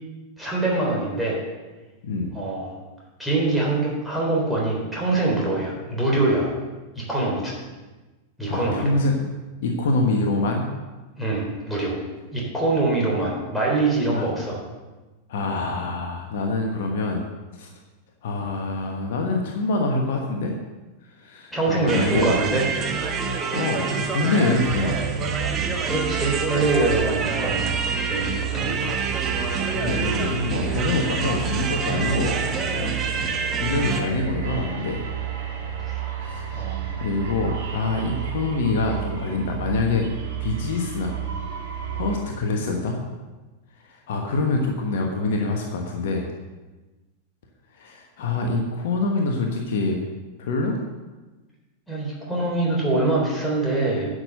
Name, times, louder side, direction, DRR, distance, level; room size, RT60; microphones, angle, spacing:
voice 1, 0.4-1.4 2.3-2.8 3.2-6.5 7.0-7.5 8.4-8.9 11.2-12.0 12.3-14.6 21.5-22.6 25.9-29.0 35.9-36.0 36.5-37.0 51.9-54.1, right 2 dB, ahead, -4 dB, 3.8 m, -24 dB
voice 2, 8.5-9.2 9.6-10.7 14.1-14.3 15.3-17.2 17.6-17.7 18.2-20.5 21.2-22.4 23.5-25.0 29.7-33.0 33.2-35.1 36.2-36.5 37.0-40.1 40.4-41.2 41.9-43.0 43.8-46.3 47.7-50.0 50.4-50.8, left 3 dB, 55° left, 1 dB, 1.3 m, -25 dB
sound 1, 21.9-34.0, right 5 dB, 30° right, 1.2 m, -27 dB
sound 2, 24.7-42.2, right 9 dB, 55° right, 2.5 m, -31 dB
10.5 x 6.5 x 6.6 m, 1.2 s
figure-of-eight pair, 90°, 0 cm